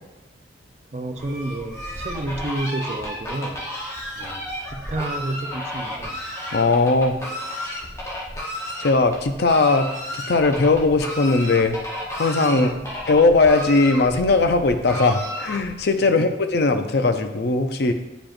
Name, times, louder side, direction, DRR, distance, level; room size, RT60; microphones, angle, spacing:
voice 1, 0.9-3.6 4.2-6.2 7.1-7.4 12.5-13.0 16.0-16.3, right 2 dB, 40° right, 5 dB, 0.5 m, -31 dB
Fowl, 1.1-15.9, equal, 15° left, 0.9 m, -33 dB
voice 2, 6.5-7.2 8.8-9.9 10.3-11.8 12.2-12.7 13.1-17.9, left 3 dB, 60° left, 7 dB, 0.5 m, -19 dB
8.8 x 4.8 x 2.5 m, 1.0 s
head